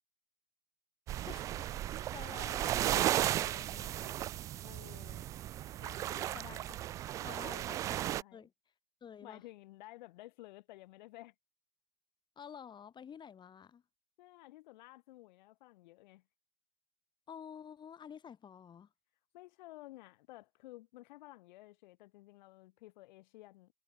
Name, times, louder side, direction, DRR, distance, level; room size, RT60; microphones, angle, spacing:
sound 1, 1.1-8.2, right 13 dB, 10° right, 0.4 m, -35 dB
voice 1, 1.2-4.3 6.3-6.8 7.2-8.0 8.3-8.5 9.0-9.4 12.4-13.8 17.3-18.9, left 8 dB, 15° left, 8.0 m, -51 dB
voice 2, 4.6-5.3 5.8-6.7 7.2-7.7 8.0-8.5 9.2-11.3 14.2-16.2 19.3-23.7, left 18 dB, 45° left, 6.1 m, -54 dB
hypercardioid pair, 160°, 31 cm